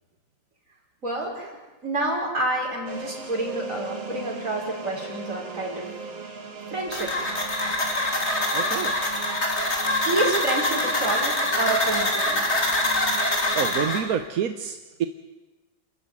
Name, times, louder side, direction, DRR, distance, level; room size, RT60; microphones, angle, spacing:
voice 1, 1.0-1.5 1.8-5.9 6.7-7.1 10.0-12.4, right 2 dB, 40° right, -1 dB, 6.2 m, -28 dB
sound 1, 2.9-13.9, right 4 dB, 70° right, 3.6 m, -38 dB
sound 2, 6.9-14.0, left 1 dB, 35° left, 3.7 m, -24 dB
voice 2, 8.5-9.0 13.5-15.0, right 8 dB, 55° right, 7 dB, 1.2 m, -28 dB
28.5 x 14.5 x 9.7 m, 1.2 s
omnidirectional pair, 2.1 m